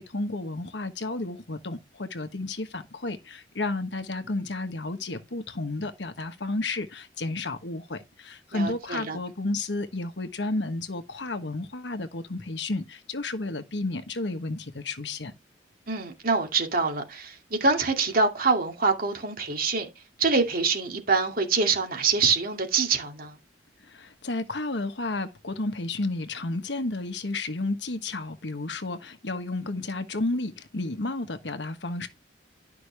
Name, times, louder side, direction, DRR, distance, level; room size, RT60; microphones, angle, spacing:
voice 1, 0.0-15.3 23.9-32.1, left 2 dB, 75° left, 1.3 m, -32 dB
voice 2, 8.5-9.2 15.9-19.9 20.2-23.4, right 4 dB, 55° right, 2.4 m, -25 dB
11.5 x 6.0 x 3.4 m
head